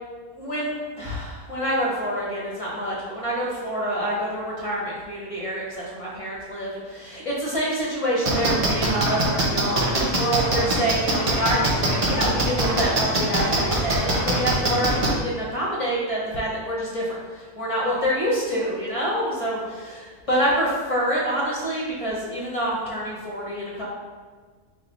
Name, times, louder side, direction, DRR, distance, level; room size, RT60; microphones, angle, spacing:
voice 1, 0.3-23.9, equal, 30° left, -5 dB, 0.7 m, -27 dB
sound 1, 8.3-15.1, right 2 dB, 50° right, 0.4 m, -22 dB
4.8 x 2.2 x 3.9 m, 1.5 s
omnidirectional pair, 1.6 m